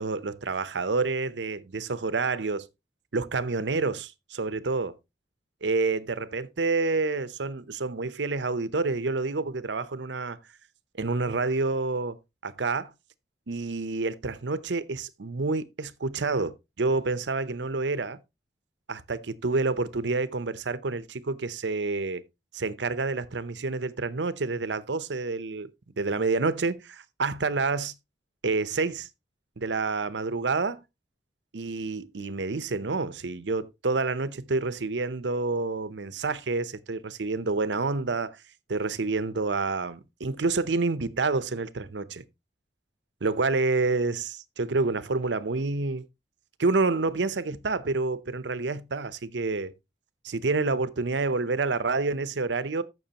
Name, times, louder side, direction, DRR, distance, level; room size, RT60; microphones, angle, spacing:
voice 1, 0.0-2.7 3.1-4.9 5.6-10.4 11.0-12.2 12.4-12.9 13.5-18.2 18.9-22.2 22.5-25.7 26.0-27.9 28.4-29.1 29.6-30.8 31.5-38.4 38.7-42.2 43.2-46.0 46.6-49.7 50.2-52.8, right 3 dB, 80° right, 0.8 m, -28 dB
14.5 x 6.1 x 2.9 m
head